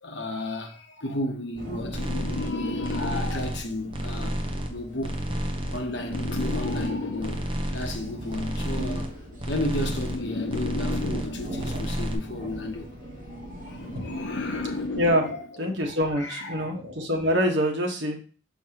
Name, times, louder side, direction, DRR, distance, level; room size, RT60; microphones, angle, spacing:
voice 1, 0.0-4.4 4.7-9.2 9.5-14.8 15.3-15.4 15.7-16.7, left 1 dB, 65° left, 1.1 m, -34 dB
sound 1, 1.3-3.7 4.7-7.7 8.7-11.7 12.7-15.7, left 3 dB, 85° left, 0.6 m, -34 dB
sound 2, 1.5-15.1, right 1 dB, 45° right, 2.6 m, -41 dB
sound 3, 1.9-2.5 2.8-3.6 3.9-4.7 5.0-5.8 6.1-6.9 7.2-8.0 8.3-9.1 9.4-10.2 10.5-11.3 11.6-12.1, equal, 30° right, 0.9 m, -31 dB
voice 2, 13.9-15.3 15.6-18.2, equal, 85° right, 1.5 m, -26 dB
6.2 x 5.8 x 3.0 m
head